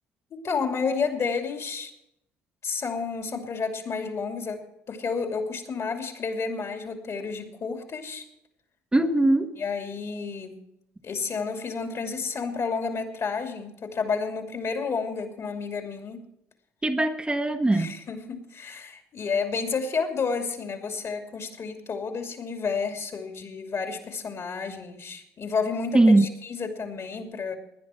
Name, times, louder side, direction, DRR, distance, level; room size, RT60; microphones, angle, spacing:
voice 1, 0.3-1.9 2.6-8.2 9.6-10.6 11.0-16.3 17.7-27.6, left 5 dB, 50° left, 5 dB, 2.7 m, -31 dB
voice 2, 8.9-9.6 16.8-17.9 25.9-26.2, right 2 dB, 15° right, 5 dB, 1.2 m, -20 dB
19.0 x 10.5 x 4.5 m, 0.81 s
hypercardioid pair, 60°, 6 cm